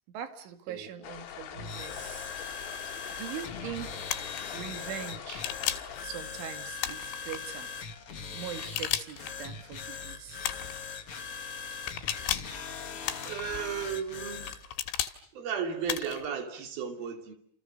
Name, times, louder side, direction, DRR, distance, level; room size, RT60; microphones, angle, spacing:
voice 1, 0.1-2.3 3.1-4.1 4.5-5.5 6.0-7.7 8.3-10.4, right 9 dB, 80° right, 4.6 m, -41 dB
sound 1, 1.0-6.1, left 9 dB, 70° left, 4.2 m, -43 dB
sound 2, 1.5-14.6, left 5 dB, 45° left, 2.1 m, -40 dB
sound 3, 4.1-4.4 5.3-6.0 6.8-7.4 8.6-9.3 10.4-10.8 11.9-12.6 13.1-13.6 14.5-15.2 15.9-16.3, left 12 dB, 90° left, 4.1 m, -33 dB
voice 2, 13.3-14.5 15.3-17.3, right 7 dB, 55° right, 4.5 m, -34 dB
29.5 x 28.5 x 6.8 m
omnidirectional pair, 5.4 m